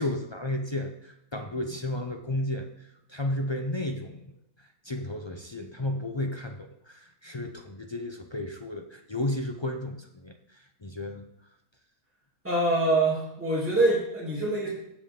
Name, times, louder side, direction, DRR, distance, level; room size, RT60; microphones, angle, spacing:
voice 1, 0.0-4.2 4.6-11.3, left 1 dB, 40° left, 4 dB, 0.4 m, -33 dB
voice 2, 12.4-14.7, right 2 dB, 10° right, -7 dB, 3.0 m, -25 dB
14.0 x 7.4 x 3.7 m, 0.81 s
omnidirectional pair, 1.6 m